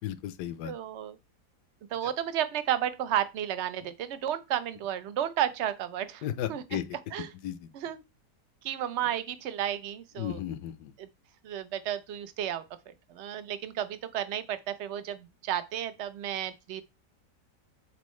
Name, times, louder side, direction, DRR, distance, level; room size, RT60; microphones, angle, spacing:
voice 1, 0.0-0.7 2.0-2.1 6.2-7.0 7.4-7.7 10.2-10.9, left 11 dB, 75° left, 1.2 m, -35 dB
voice 2, 0.6-1.1 1.9-6.2 6.5-6.6 7.1-7.3 7.7-8.0 8.6-10.4 11.0-11.1 11.4-16.8, right 10 dB, 60° right, 0.7 m, -32 dB
8.3 x 4.4 x 3.1 m
omnidirectional pair, 1.8 m